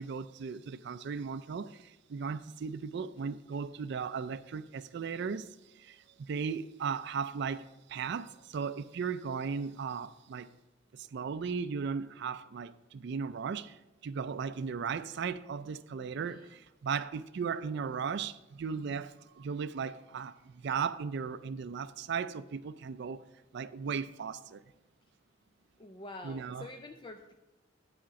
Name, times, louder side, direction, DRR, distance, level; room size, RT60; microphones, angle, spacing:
voice 1, 0.0-5.5 5.8-10.5 10.9-23.2 23.5-24.6 26.2-26.7, right 6 dB, 60° right, 0.4 m, -36 dB
voice 2, 16.2-16.5 25.8-27.3, left 2 dB, 25° left, 0.4 m, -47 dB
10.0 x 5.1 x 5.8 m
head